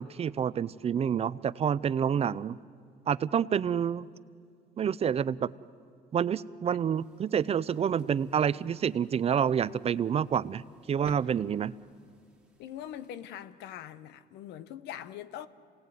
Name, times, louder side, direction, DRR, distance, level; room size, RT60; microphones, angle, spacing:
voice 1, 0.0-2.6 3.1-4.1 4.8-5.5 6.1-10.6 10.9-11.8, right 8 dB, 35° right, 0.5 m, -28 dB
sound 1, 6.9-13.1, right 2 dB, 5° right, 2.9 m, -56 dB
voice 2, 12.6-15.5, left 11 dB, 85° left, 1.0 m, -42 dB
27.0 x 18.5 x 9.4 m
cardioid pair, 110°, 17 cm